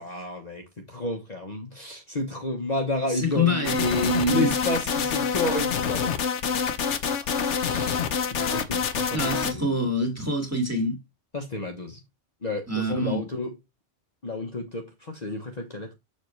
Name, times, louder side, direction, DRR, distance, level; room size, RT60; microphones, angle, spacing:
voice 1, 0.0-3.7 4.2-6.2 7.6-8.0 8.3-9.8 11.3-12.0 12.4-13.5 14.2-15.9, left 2 dB, 35° left, 1.1 m, -31 dB
voice 2, 3.1-4.5 9.1-11.0 12.7-13.2, left 1 dB, 15° right, 2.3 m, -26 dB
sound 1, 3.6-9.5, left 6 dB, 75° left, 1.2 m, -26 dB
7.0 x 6.5 x 3.2 m
omnidirectional pair, 1.2 m